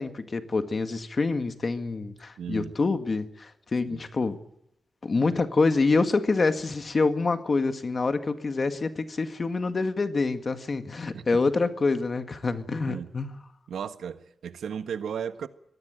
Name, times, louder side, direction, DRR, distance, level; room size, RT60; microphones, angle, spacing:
voice 1, 0.0-4.4 5.0-13.3, left 3 dB, 30° left, 1.9 m, -26 dB
voice 2, 2.4-2.7 3.9-4.0 11.1-11.2 12.8-13.1 13.7-15.5, right 7 dB, 80° right, 1.5 m, -35 dB
24.5 x 19.5 x 9.1 m
wide cardioid pair, 170°, 0 cm